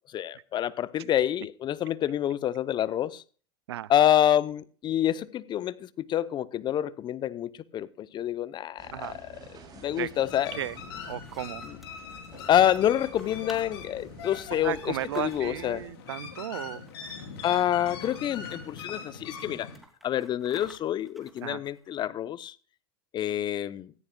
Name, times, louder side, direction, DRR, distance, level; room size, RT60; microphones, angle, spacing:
voice 1, 0.1-3.2 3.9-9.3 9.8-10.5 11.6-11.8 12.5-15.8 17.4-19.7 20.0-22.5 23.1-23.9, left 11 dB, 35° left, 0.6 m, -27 dB
sound 1, 8.8-15.9, right 2 dB, 30° right, 7.3 m, -52 dB
sound 2, 10.2-19.8, left 6 dB, 70° left, 3.6 m, -42 dB
sound 3, 10.2-15.8 16.8-17.3 17.5-17.6 17.9-19.0 19.4-22.0, equal, ahead, 2.8 m, -54 dB
voice 2, 11.1-11.7 14.6-16.8 21.4-21.6, right 13 dB, 75° right, 0.4 m, -34 dB
17.5 x 14.0 x 2.2 m
hypercardioid pair, 90°, 14 cm